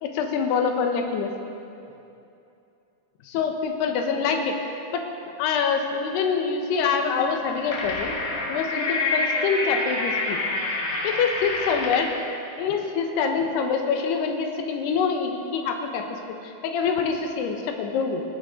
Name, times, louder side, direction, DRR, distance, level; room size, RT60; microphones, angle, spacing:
voice 1, 0.0-1.3 3.3-4.6 4.9-5.0 5.4-8.2 8.5-10.4 11.0-12.1 12.6-16.1 16.4-18.2, left 5 dB, 80° left, 4 dB, 3.1 m, -25 dB
sound 1, 7.3-12.2, left 3 dB, 55° left, 2.8 m, -27 dB
20.0 x 15.5 x 3.8 m, 2.7 s
omnidirectional pair, 4.8 m